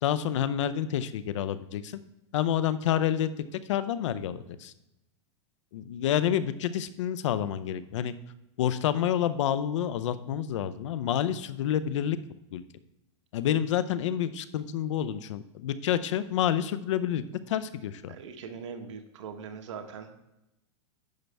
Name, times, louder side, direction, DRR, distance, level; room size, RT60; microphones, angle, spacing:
voice 1, 0.0-2.0 2.3-3.3 3.7-4.7 5.7-8.1 8.6-12.2 12.5-12.6 13.3-18.2, left 10 dB, 80° left, 14 dB, 0.6 m, -28 dB
voice 2, 18.1-20.3, right 6 dB, 80° right, 6 dB, 1.3 m, -41 dB
10.5 x 6.6 x 3.4 m, 0.91 s
supercardioid pair, 145°, 15 cm